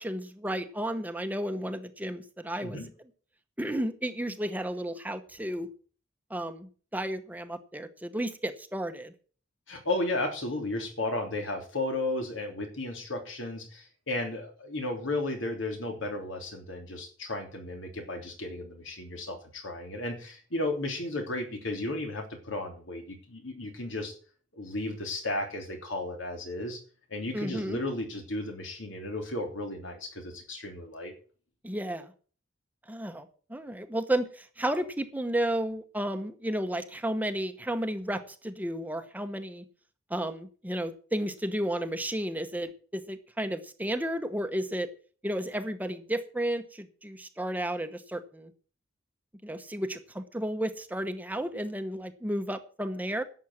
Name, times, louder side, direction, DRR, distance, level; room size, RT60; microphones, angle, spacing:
voice 1, 0.0-2.8 3.6-5.7 6.3-9.1 27.3-27.8 31.6-32.1 32.9-39.6 40.1-44.9 45.2-48.5 49.4-53.2, right 1 dB, 10° right, 8 dB, 0.9 m, -32 dB
voice 2, 9.7-24.1 24.5-26.8 27.1-31.1, left 2 dB, 80° left, 4 dB, 3.1 m, -34 dB
11.5 x 7.2 x 7.2 m, 0.41 s
head